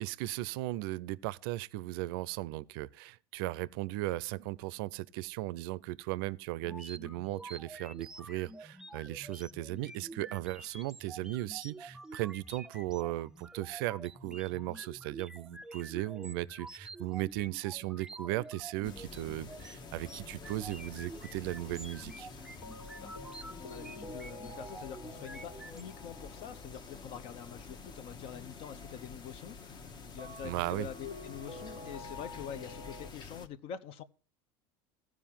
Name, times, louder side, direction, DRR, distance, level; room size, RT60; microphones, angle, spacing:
voice 1, 0.0-22.3 30.4-30.9, right 17 dB, 75° right, 0.5 m, -37 dB
sound 1, 6.6-25.8, right 2 dB, 5° right, 0.4 m, -49 dB
sound 2, 18.8-33.5, left 4 dB, 35° left, 1.1 m, -49 dB
sound 3, 19.2-20.6 22.6-28.2 30.2-33.1, left 2 dB, 90° left, 3.4 m, -50 dB
voice 2, 23.4-34.0, left 8 dB, 50° left, 0.7 m, -46 dB
14.5 x 4.9 x 7.3 m
supercardioid pair, 110°, 12 cm